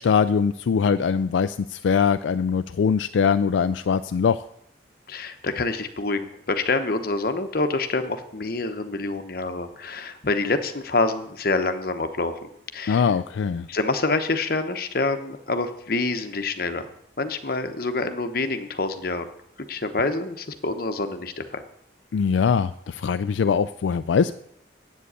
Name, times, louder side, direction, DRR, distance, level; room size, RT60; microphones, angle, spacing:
voice 1, 0.0-4.4 12.9-13.7 22.1-24.3, left 6 dB, 75° left, 11 dB, 0.3 m, -22 dB
voice 2, 5.1-13.1 13.7-16.9 17.2-19.3 19.7-21.6, left 3 dB, 50° left, 8 dB, 1.0 m, -27 dB
8.3 x 7.6 x 8.2 m, 0.74 s
head